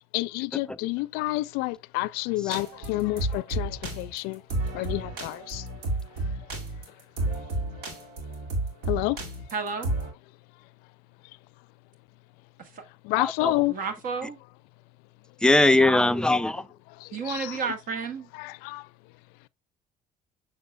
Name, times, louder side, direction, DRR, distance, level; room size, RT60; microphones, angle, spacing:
voice 1, 0.1-4.4 4.7-5.6 8.9-9.2 13.0-13.7 17.0-17.6 18.4-18.8, left 20 dB, 80° left, 0.4 m, -29 dB
sound 1, 2.5-10.1, right 2 dB, 80° right, 2.2 m, -31 dB
voice 2, 9.5-9.9 12.6-12.8 13.7-14.4 17.1-18.3, right 5 dB, 60° right, 1.4 m, -32 dB
voice 3, 13.2-13.5 15.4-16.6, left 2 dB, 5° left, 0.5 m, -20 dB
6.7 x 6.4 x 2.2 m
supercardioid pair, 75°, 16 cm